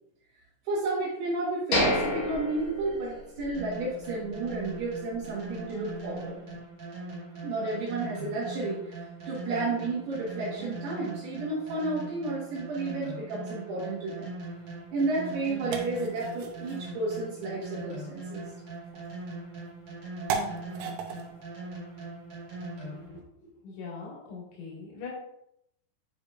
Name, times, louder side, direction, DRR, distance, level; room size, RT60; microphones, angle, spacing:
voice 1, 0.6-6.4 7.4-14.3 14.9-18.4, right 2 dB, 70° right, -7 dB, 3.3 m, -32 dB
sound 1, 1.7-3.6 4.0-4.1 4.6-4.8, left 1 dB, 55° left, 1.7 m, -29 dB
sound 2, 3.5-23.2, right 2 dB, 35° right, 1.9 m, -41 dB
sound 3, 14.5-23.1, right 6 dB, 85° right, 3.2 m, -40 dB
voice 2, 23.6-25.1, left 5 dB, 85° left, -5 dB, 4.5 m, -41 dB
10.0 x 5.2 x 2.5 m, 0.79 s
omnidirectional pair, 5.2 m